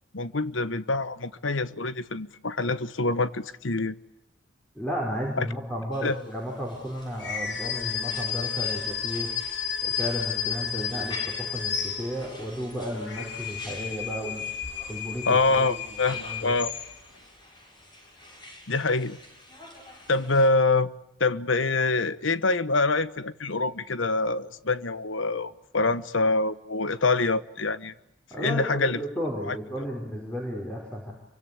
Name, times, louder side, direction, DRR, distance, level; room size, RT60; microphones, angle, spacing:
voice 1, 0.1-4.0 5.4-5.5 6.0-6.2 15.3-16.7 18.7-19.2 20.1-20.9 21.2-27.9 28.4-29.0 29.5-29.6, left 3 dB, 85° left, 1.2 m, -25 dB
voice 2, 4.7-9.3 9.8-14.4 14.9-15.8 16.1-16.5 28.3-31.1, equal, 5° left, 5.1 m, -33 dB
sound 1, 5.9-20.5, equal, 25° left, 7.4 m, -47 dB
sound 2, 7.2-12.4 12.9-17.2, left 8 dB, 65° left, 3.2 m, -32 dB
28.5 x 24.5 x 8.6 m
head